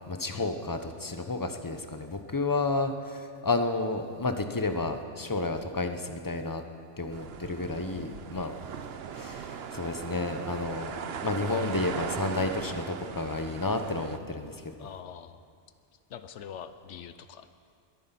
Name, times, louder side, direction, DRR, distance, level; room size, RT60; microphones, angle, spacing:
voice 1, 0.1-6.6 7.0-8.6 9.1-14.6, left 3 dB, 20° left, 7 dB, 0.7 m, -31 dB
sound 1, 7.1-14.2, right 7 dB, 60° right, 0.9 m, -39 dB
voice 2, 7.9-8.5 14.8-15.4 16.1-17.5, left 8 dB, 75° left, 11 dB, 1.0 m, -44 dB
22.0 x 9.3 x 5.8 m, 2.3 s
omnidirectional pair, 1.2 m